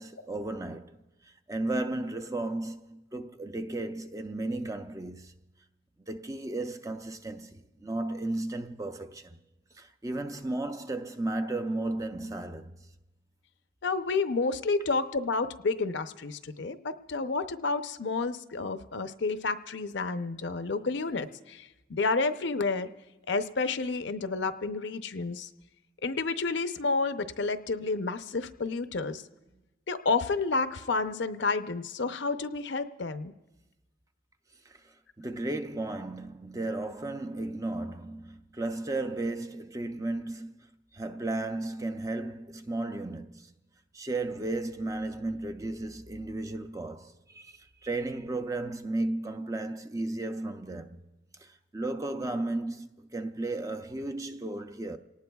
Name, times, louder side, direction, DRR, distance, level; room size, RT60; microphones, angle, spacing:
voice 1, 0.0-5.3 6.1-9.4 9.7-12.9 34.7-40.6 40.9-43.5 43.9-51.1 51.4-55.0, right 2 dB, 15° right, 0.5 m, -34 dB
voice 2, 13.8-22.9 23.3-25.5 26.0-29.2 29.9-33.3, left 4 dB, 65° left, 0.6 m, -30 dB
29.0 x 18.5 x 2.3 m
head